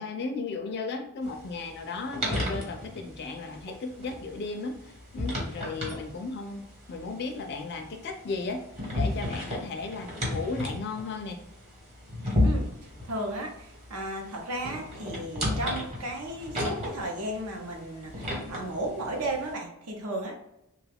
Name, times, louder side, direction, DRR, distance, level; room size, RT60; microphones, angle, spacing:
voice 1, 0.0-6.6 6.9-8.6 8.9-11.4, left 3 dB, 50° left, 5 dB, 0.4 m, -35 dB
sound 1, 1.2-19.5, left 1 dB, 30° right, 1.0 m, -34 dB
voice 2, 12.4-20.4, right 1 dB, 75° right, 2 dB, 0.8 m, -34 dB
3.3 x 2.3 x 3.4 m, 0.83 s
head